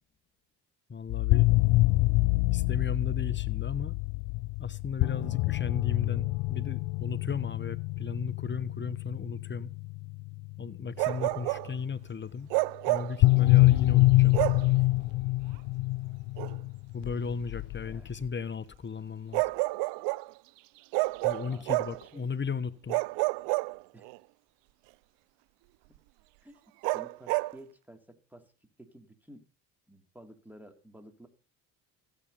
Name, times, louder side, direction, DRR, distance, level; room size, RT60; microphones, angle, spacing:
voice 1, 0.9-1.5 2.5-3.9 4.6-9.7 10.6-12.5 12.9-14.4 16.9-19.4 21.2-23.0, left 5 dB, 25° left, 1.1 m, -36 dB
sound 1, 1.1-11.2 13.2-18.3, left 20 dB, 65° left, 0.6 m, -26 dB
voice 2, 5.1-5.7 17.8-18.1 21.5-21.7 22.1-22.3 23.9-24.1 26.4-26.6 26.9-29.4 29.9-31.3, right 1 dB, 5° right, 3.3 m, -53 dB
Bark, 11.0-11.7 12.5-13.2 14.3-14.7 16.4-16.5 19.3-20.3 20.9-22.0 22.9-24.2 26.8-27.6, right 25 dB, 70° right, 0.5 m, -29 dB
15.0 x 8.9 x 5.6 m
supercardioid pair, 75°, 43 cm